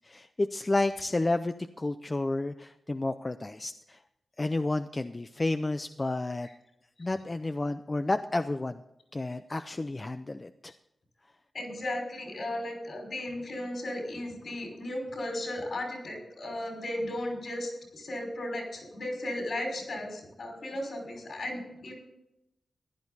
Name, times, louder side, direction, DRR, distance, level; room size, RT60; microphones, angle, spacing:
voice 1, 0.0-4.0 4.4-6.5 7.0-8.8 9.1-10.7, left 2 dB, 25° left, 9 dB, 0.5 m, -31 dB
voice 2, 11.5-21.9, left 1 dB, 60° left, 1 dB, 5.5 m, -35 dB
15.0 x 12.0 x 4.1 m, 0.86 s
wide cardioid pair, 145°, 0 cm